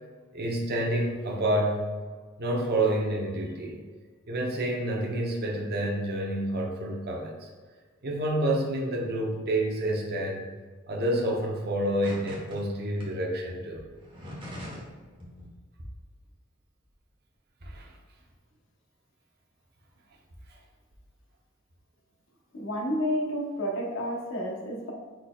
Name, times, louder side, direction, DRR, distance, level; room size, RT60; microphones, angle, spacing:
voice 1, 0.3-1.9 2.4-3.8 4.3-7.5 8.0-10.5 10.9-13.8 17.6-17.9, right 1 dB, 50° right, -1 dB, 0.8 m, -28 dB
sound 1, 12.0-12.6 13.0-13.1 13.9-14.9 15.2-15.5, equal, 25° right, 1.2 m, -41 dB
voice 2, 22.5-24.9, equal, 65° left, -1 dB, 1.0 m, -30 dB
4.9 x 4.2 x 2.4 m, 1.5 s
head